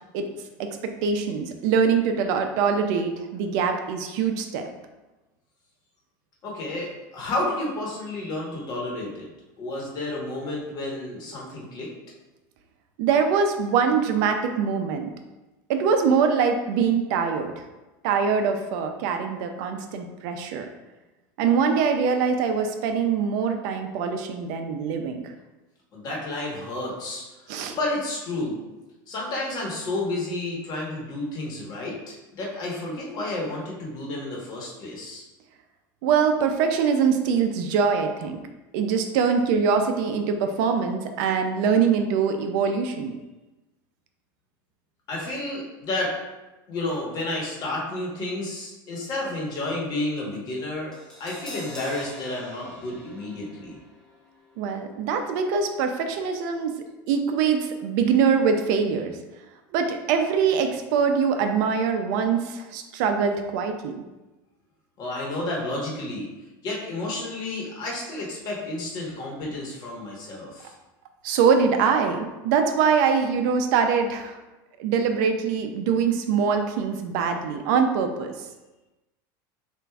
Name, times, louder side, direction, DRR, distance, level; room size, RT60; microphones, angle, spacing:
voice 1, 0.6-4.7 13.0-15.1 15.7-17.5 18.0-20.7 21.4-25.3 27.5-27.8 36.0-38.4 38.7-43.1 54.6-56.7 57.1-59.2 59.7-64.0 71.2-74.4 74.8-78.3, right 6 dB, 65° right, 6 dB, 0.5 m, -23 dB
voice 2, 6.4-9.3 9.6-11.9 25.9-27.2 27.7-28.6 29.1-35.2 45.1-46.1 46.7-50.9 51.2-53.8 65.0-66.3 66.6-70.7, left 2 dB, 40° left, -2 dB, 1.2 m, -31 dB
Crash cymbal, 50.9-57.1 57.3-57.5, left 1 dB, 5° left, 0.7 m, -46 dB
6.4 x 2.5 x 2.3 m, 1.1 s
supercardioid pair, 140°, 11 cm